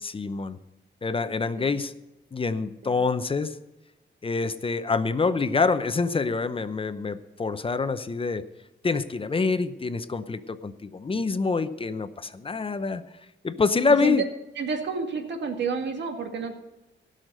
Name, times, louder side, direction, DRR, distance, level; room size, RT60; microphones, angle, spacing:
voice 1, 0.0-0.6 1.0-1.9 2.3-3.6 4.2-8.5 8.8-13.0 13.4-14.2, left 4 dB, 30° left, 12 dB, 0.7 m, -26 dB
voice 2, 14.6-16.5, right 5 dB, 65° right, 5 dB, 1.9 m, -30 dB
16.5 x 6.5 x 6.5 m, 1.0 s
cardioid pair, 105°, 19 cm